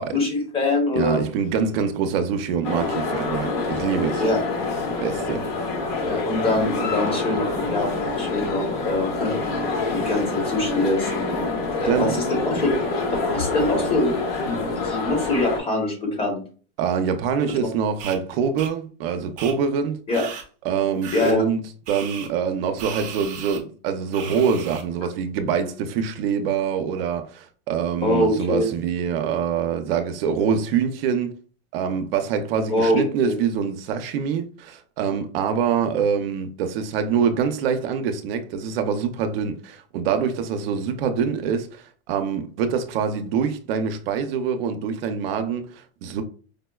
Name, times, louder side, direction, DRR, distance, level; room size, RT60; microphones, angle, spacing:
voice 1, 0.0-1.2 4.2-4.4 6.0-9.3 9.9-12.9 13.3-14.1 14.4-16.4 20.1-20.3 21.1-21.4 28.0-28.7 32.7-33.3, left 2 dB, 20° left, 0.9 m, -24 dB
voice 2, 0.9-4.2 5.0-5.4 11.9-12.2 16.8-20.0 20.6-21.6 21.9-31.3 31.7-46.2, right 7 dB, 75° right, 0.6 m, -25 dB
sound 1, 2.6-15.6, left 3 dB, 75° left, 1.3 m, -26 dB
sound 2, 18.0-18.2 18.6-18.7 19.4-19.5 20.1-20.4 21.0-21.3 21.9-22.3 22.8-23.6 24.1-24.8, right 7 dB, 25° right, 0.6 m, -35 dB
5.0 x 2.1 x 2.3 m
supercardioid pair, 165°, 29 cm